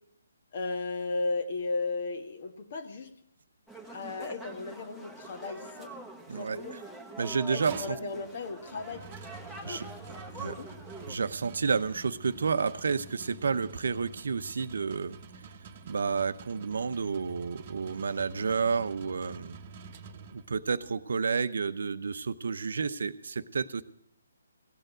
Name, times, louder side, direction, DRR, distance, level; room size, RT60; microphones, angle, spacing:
voice 1, 0.5-3.1 3.9-5.9 6.4-6.7 7.5-9.0 9.6-10.7, left 3 dB, 45° left, 6 dB, 1.7 m, -35 dB
sound 1, 3.7-11.2, right 2 dB, 5° left, 1.3 m, -45 dB
voice 2, 6.3-6.8 7.2-8.0 9.6-9.9 10.4-10.6 11.1-15.2 15.9-19.6 20.3-23.8, right 5 dB, 65° right, 13 dB, 0.8 m, -30 dB
sound 2, 7.6-20.8, right 5 dB, 35° right, 1.0 m, -48 dB
17.0 x 6.6 x 9.1 m, 0.74 s
figure-of-eight pair, 145°, 0 cm